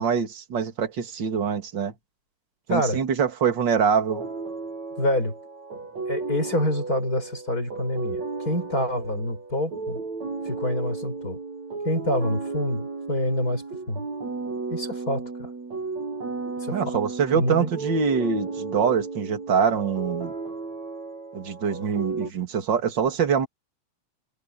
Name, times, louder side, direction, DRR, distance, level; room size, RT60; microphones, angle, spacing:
voice 1, 0.0-1.9 2.7-4.3 16.7-20.3 21.3-23.5, right 6 dB, 40° right, 2.8 m, -24 dB
voice 2, 2.7-3.0 5.0-5.3 6.1-10.0 10.4-11.4 11.8-14.1 14.7-15.5 16.6-17.0 17.3-17.7, left 1 dB, 25° left, 6.6 m, -27 dB
sound 1, 4.1-22.3, right 3 dB, 60° right, 7.1 m, -34 dB
omnidirectional pair, 3.6 m